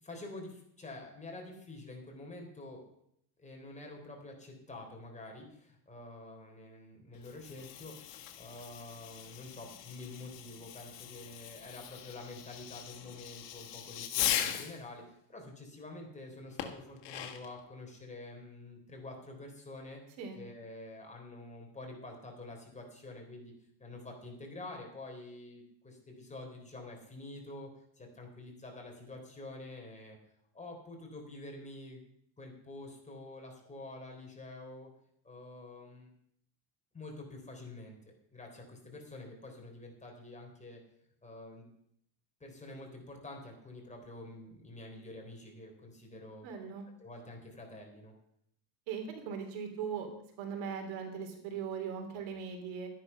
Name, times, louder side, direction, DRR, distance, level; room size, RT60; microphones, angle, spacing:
voice 1, 0.0-2.8 3.4-15.0 15.3-20.0 20.3-23.5 23.8-27.7 28.0-30.2 30.5-32.0 32.4-34.9 35.2-36.1 36.9-40.8 41.2-41.7 42.4-46.5 47.0-48.1, left 2 dB, 15° left, 1 dB, 3.7 m, -47 dB
Fireworks, 7.1-14.8 16.6-17.6, left 11 dB, 65° left, 1.8 m, -39 dB
voice 2, 46.4-46.9 48.9-50.1 50.4-52.9, right 6 dB, 80° right, 4 dB, 3.5 m, -39 dB
12.5 x 11.0 x 5.7 m, 0.72 s
cardioid pair, 130°, 46 cm